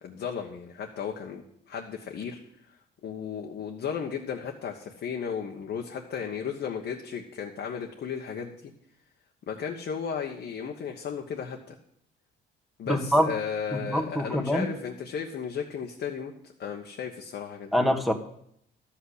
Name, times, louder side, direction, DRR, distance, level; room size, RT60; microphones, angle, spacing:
voice 1, 0.0-2.4 3.0-8.7 9.5-11.7 12.8-16.3 16.6-17.7, left 7 dB, 60° left, 1 dB, 1.3 m, -34 dB
voice 2, 12.9-13.3 13.7-14.7 17.7-18.1, equal, ahead, 4 dB, 1.5 m, -25 dB
12.0 x 5.8 x 8.1 m, 0.71 s
cardioid pair, 90°, 20 cm